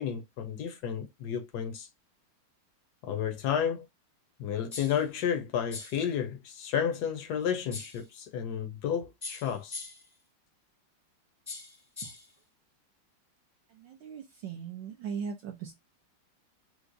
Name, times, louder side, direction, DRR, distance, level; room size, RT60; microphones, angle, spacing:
voice 1, 0.0-1.9 3.0-3.9 4.4-9.9, left 8 dB, 70° left, 1.0 m, -32 dB
sound 1, 4.7-5.1 5.7-6.1 7.7-8.1 9.2-10.1 11.5-12.3, left 4 dB, 20° left, 0.5 m, -42 dB
voice 2, 13.8-15.7, right 6 dB, 70° right, 1.3 m, -38 dB
4.7 x 2.1 x 2.5 m
omnidirectional pair, 2.3 m